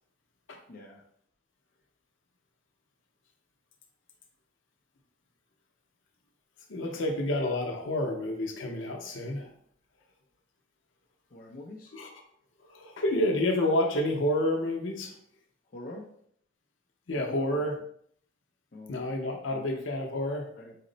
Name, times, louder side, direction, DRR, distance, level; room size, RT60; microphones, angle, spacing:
voice 1, 0.7-1.0 11.3-11.9 15.7-16.1 17.1-17.6 18.7-19.0 19.5-19.7 20.6-20.8, left 2 dB, 50° left, 0 dB, 0.5 m, -45 dB
voice 2, 6.7-9.5 11.9-12.1 12.7-15.2 17.1-17.8 18.9-20.5, left 1 dB, 85° left, 2 dB, 0.7 m, -29 dB
4.2 x 2.0 x 3.8 m, 0.65 s
head